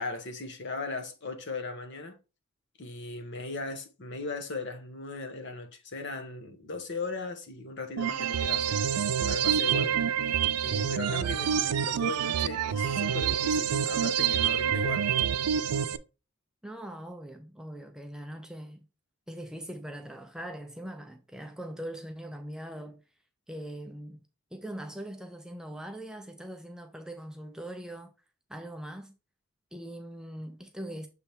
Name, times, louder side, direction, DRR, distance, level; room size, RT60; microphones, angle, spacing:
voice 1, 0.0-2.2 2.8-8.8 9.3-10.0 10.6-15.1, left 3 dB, 50° left, 1.1 m, -38 dB
sound 1, 8.0-16.0, right 8 dB, 90° right, 0.4 m, -27 dB
voice 2, 16.6-18.9 19.3-23.0 23.5-24.2 24.5-28.1 28.5-29.1 29.7-31.1, right 1 dB, 5° right, 0.5 m, -41 dB
6.8 x 3.4 x 4.4 m
head